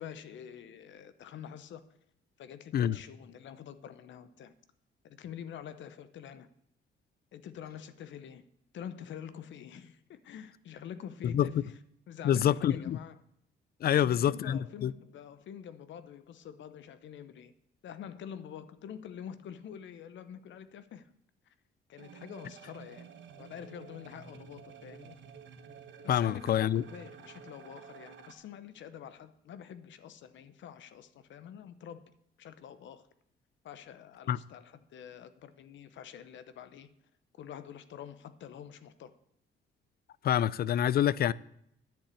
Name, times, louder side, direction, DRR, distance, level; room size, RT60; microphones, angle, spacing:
voice 1, 0.0-1.8 2.4-4.5 5.0-6.5 7.3-8.4 8.7-11.7 12.1-13.2 14.0-17.5 17.8-21.1 21.5-21.6 21.9-23.1 23.4-25.2 26.0-33.1 33.6-36.9 37.4-39.1, left 9 dB, 70° left, 0.8 m, -46 dB
voice 2, 12.2-13.0 13.8-14.9 26.1-26.8 34.3-34.4 40.2-41.3, left 10 dB, 50° left, 0.4 m, -26 dB
sound 1, 22.0-28.3, right 7 dB, 70° right, 1.2 m, -51 dB
10.5 x 5.8 x 8.3 m
cardioid pair, 90°, 20 cm